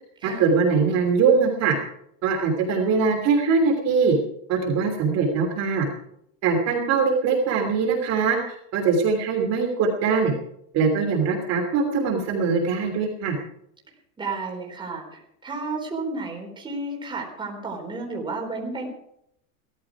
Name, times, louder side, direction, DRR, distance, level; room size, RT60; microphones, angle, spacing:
voice 1, 0.2-1.7 2.2-4.2 4.5-5.9 6.4-10.3 10.7-13.4, right 5 dB, 40° right, 1 dB, 3.1 m, -22 dB
voice 2, 14.2-18.9, right 3 dB, 10° right, -1 dB, 4.0 m, -32 dB
17.0 x 13.5 x 4.8 m, 0.74 s
supercardioid pair, 160°, 40 cm